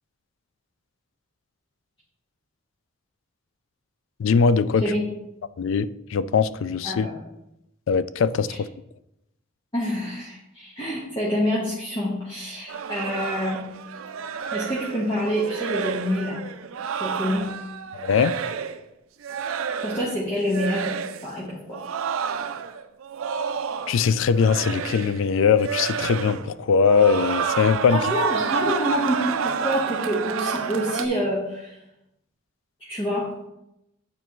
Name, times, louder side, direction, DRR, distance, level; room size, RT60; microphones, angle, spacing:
voice 1, 4.2-4.8 5.6-7.1 7.9-8.7 17.9-18.4 23.9-28.0, left 6 dB, 70° left, 0.3 m, -21 dB
voice 2, 6.8-7.1 8.5-8.6 9.7-13.6 14.5-16.5 16.9-17.5 19.8-20.9 21.2-21.8 27.9-31.8 32.9-33.3, equal, 25° left, 1.3 m, -27 dB
sound 1, 12.7-18.8 19.2-20.2 20.5-21.3 21.7-24.1 24.3-25.3 25.6-26.5 26.8-31.1, right 6 dB, 80° right, 0.4 m, -30 dB
9.3 x 4.4 x 3.1 m
head